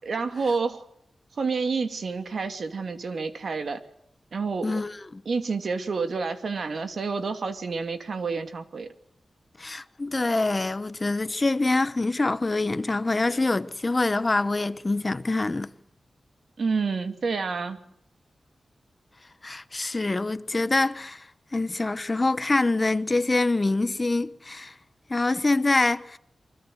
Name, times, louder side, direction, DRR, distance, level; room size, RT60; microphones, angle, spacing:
voice 1, 0.0-0.8 1.4-3.8 4.3-4.8 5.2-8.9 16.6-17.8, right 4 dB, 65° right, 2.7 m, -29 dB
voice 2, 4.6-5.2 9.6-15.7 19.4-21.3 21.5-24.7 25.1-26.2, left 2 dB, 25° left, 1.0 m, -25 dB
28.5 x 24.5 x 8.0 m
wide cardioid pair, 130°, 0 cm